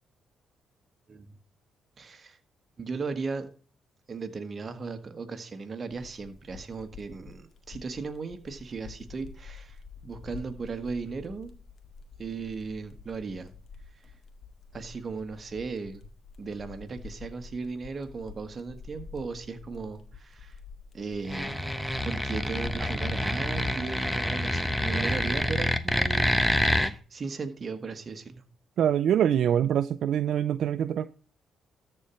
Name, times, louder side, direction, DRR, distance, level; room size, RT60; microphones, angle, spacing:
voice 1, 2.0-2.4 2.8-3.5 4.1-11.5 12.2-13.5 14.7-16.1 16.4-20.5 20.9-21.6 22.0-28.4, right 4 dB, 45° right, 1.7 m, -37 dB
sound 1, 5.9-23.1, left 5 dB, 55° left, 1.8 m, -48 dB
sound 2, 21.2-26.9, left 1 dB, 5° left, 1.0 m, -27 dB
voice 2, 28.8-31.1, right 9 dB, 70° right, 0.4 m, -24 dB
13.5 x 4.6 x 5.7 m
supercardioid pair, 65°, 0 cm